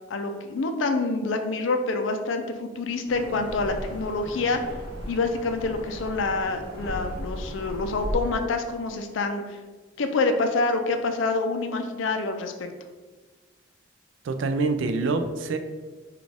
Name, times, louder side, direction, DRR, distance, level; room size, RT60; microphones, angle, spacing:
voice 1, 0.1-4.6 5.1-9.6 10.0-12.5, left 3 dB, 75° left, 6 dB, 0.4 m, -27 dB
sound 1, 3.1-8.2, equal, 25° right, 1.5 m, -36 dB
voice 2, 14.2-15.6, right 3 dB, 70° right, 8 dB, 0.3 m, -25 dB
4.0 x 2.4 x 3.4 m, 1.3 s
head